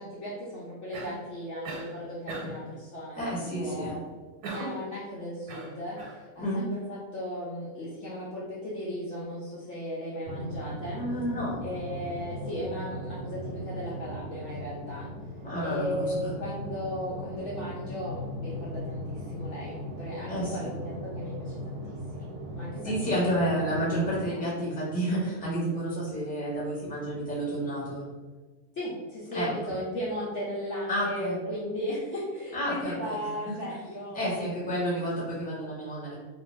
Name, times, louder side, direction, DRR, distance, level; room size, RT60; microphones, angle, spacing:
voice 1, 0.0-4.0 4.5-11.0 11.6-15.1 15.6-22.3 22.5-23.6 28.7-34.4, equal, 65° left, -7 dB, 0.8 m, -36 dB
Cough, 0.9-1.3 1.6-1.9 2.3-2.7 4.4-4.9 5.5-6.2, right 2 dB, 85° right, 1.1 m, -38 dB
voice 2, 3.2-3.9 6.4-6.6 11.0-11.6 15.4-16.3 20.3-20.7 22.8-28.0 29.3-29.5 30.9-31.4 32.5-33.8 34.1-36.1, right 1 dB, 10° left, -7 dB, 0.7 m, -30 dB
sound 1, 10.2-24.2, equal, 70° right, 0.9 m, -38 dB
2.5 x 2.3 x 3.1 m, 1.4 s
omnidirectional pair, 1.6 m